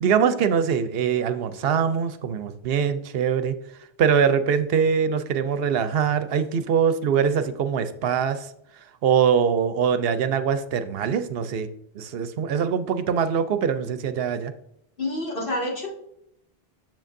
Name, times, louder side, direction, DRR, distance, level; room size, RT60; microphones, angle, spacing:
voice 1, 0.0-3.6 4.0-8.5 9.0-11.7 12.0-14.5, right 7 dB, 75° right, 11 dB, 0.8 m, -23 dB
voice 2, 15.0-15.9, left 1 dB, 60° left, -4 dB, 2.2 m, -28 dB
7.5 x 7.3 x 2.6 m, 0.78 s
omnidirectional pair, 1.0 m